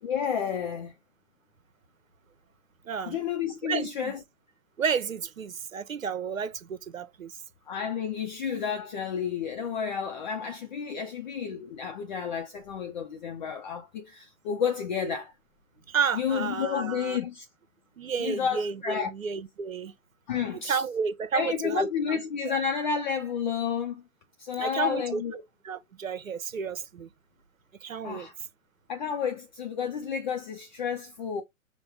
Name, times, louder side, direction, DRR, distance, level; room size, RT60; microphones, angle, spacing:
voice 1, 0.0-0.9 3.1-4.2 7.7-15.3 16.1-17.5 18.2-19.1 20.3-20.8 21.3-24.0 24.4-25.4 28.0-28.3 28.9-31.4, left 7 dB, 35° left, 0.7 m, -31 dB
voice 2, 2.8-3.2 3.6-4.1 4.8-7.4 15.9-17.2 18.0-19.9 20.5-21.9 22.4-22.5 24.6-25.2 25.6-27.1 27.8-28.3, right 6 dB, 75° right, 1.0 m, -31 dB
5.5 x 2.3 x 3.4 m
figure-of-eight pair, 130°, 41 cm